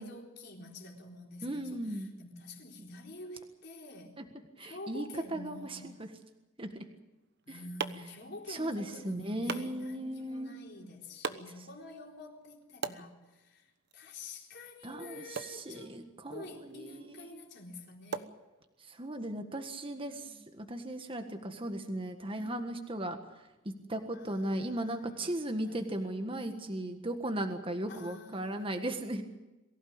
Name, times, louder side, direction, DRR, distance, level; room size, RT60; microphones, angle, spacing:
voice 1, 0.0-4.2 4.6-6.0 7.5-16.0 16.3-18.3 20.0-20.4 22.3-22.6 24.1-25.3 25.6-26.1 26.3-27.1 27.9-29.0, left 2 dB, 50° left, 0 dB, 4.2 m, -48 dB
voice 2, 1.4-2.1 4.2-4.3 4.6-6.1 6.6-6.8 7.5-7.6 8.5-10.5 11.6-11.7 14.8-17.4 18.8-29.2, right 1 dB, 25° right, 5 dB, 1.6 m, -37 dB
sound 1, 7.1-19.1, right 5 dB, 55° right, 1.1 m, -45 dB
23.0 x 16.0 x 8.9 m, 1.1 s
head